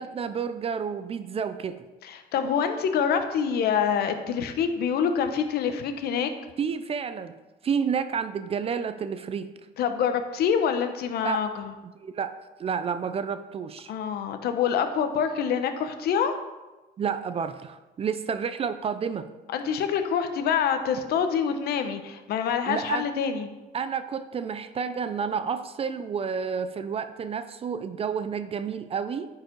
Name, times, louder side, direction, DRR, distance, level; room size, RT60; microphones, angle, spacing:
voice 1, 0.0-1.8 6.6-7.4 7.6-9.5 11.2-11.4 12.0-12.3 12.6-13.9 17.0-19.3 22.7-23.1 23.7-29.3, right 6 dB, 35° right, 11 dB, 0.5 m, -30 dB
voice 2, 2.0-6.3 9.8-11.7 13.9-16.3 19.5-23.5, left 7 dB, 70° left, 8 dB, 0.9 m, -26 dB
9.7 x 4.8 x 4.6 m, 1.1 s
cardioid pair, 110°, 17 cm